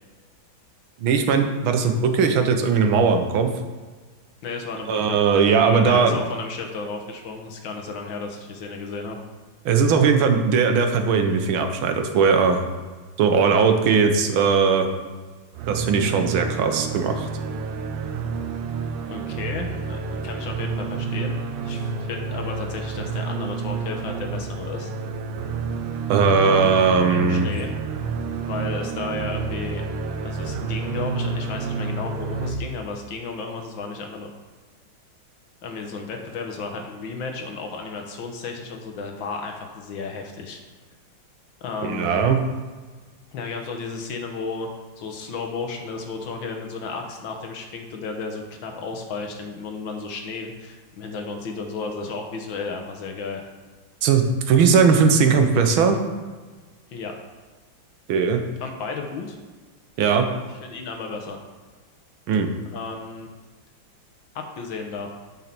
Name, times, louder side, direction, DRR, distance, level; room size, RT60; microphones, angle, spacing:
voice 1, 1.0-3.5 4.9-6.2 9.7-12.6 13.2-14.9 15.7-17.3 26.1-27.5 41.8-42.4 54.0-56.0 58.1-58.4 60.0-60.3 62.3-62.5, right 5 dB, 90° right, 5 dB, 1.8 m, -19 dB
voice 2, 4.4-5.2 5.6-9.2 19.1-24.9 26.4-26.7 27.1-27.7 28.4-29.8 30.2-34.3 35.6-40.6 41.6-42.3 43.3-44.7 45.0-53.4 56.9-57.1 58.6-59.4 60.6-61.4 62.7-63.3 64.4-65.1, left 4 dB, 75° left, 3 dB, 1.9 m, -33 dB
sound 1, 15.5-32.5, right 5 dB, 75° right, 1.5 m, -29 dB
9.5 x 5.6 x 6.0 m, 1.4 s
omnidirectional pair, 2.2 m